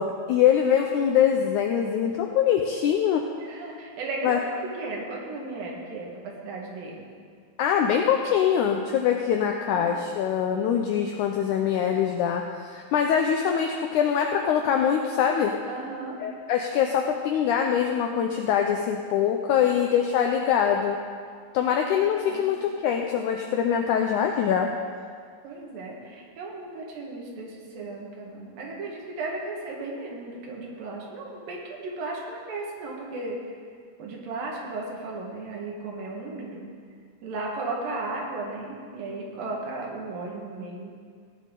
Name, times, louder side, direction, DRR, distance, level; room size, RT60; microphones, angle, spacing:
voice 1, 0.0-3.3 4.2-4.4 7.6-15.5 16.2-21.0 21.5-24.7, left 8 dB, 90° left, 3 dB, 1.7 m, -23 dB
voice 2, 3.4-4.5 4.8-7.1 9.6-9.9 15.7-16.2 19.6-19.7 20.0-20.1 22.0-22.5 25.4-33.4 34.0-36.6 37.2-40.9, right 3 dB, 70° right, -2 dB, 3.3 m, -35 dB
16.5 x 10.0 x 3.8 m, 2.1 s
omnidirectional pair, 4.3 m